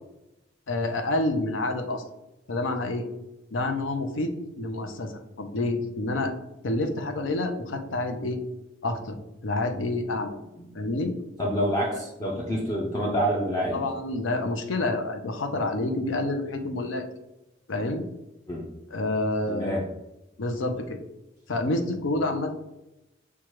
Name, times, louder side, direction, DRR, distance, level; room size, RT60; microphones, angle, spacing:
voice 1, 0.7-2.0 2.5-3.1 3.5-6.3 6.6-8.4 8.8-9.2 9.4-10.4 10.7-11.1 13.7-17.0 17.7-18.0 18.9-19.8 20.4-21.0 21.5-22.5, left 2 dB, 85° left, 6 dB, 0.6 m, -28 dB
voice 2, 11.4-14.6 18.5-18.7 19.5-19.9, equal, 20° left, -4 dB, 0.5 m, -28 dB
6.1 x 2.3 x 3.0 m, 0.93 s
head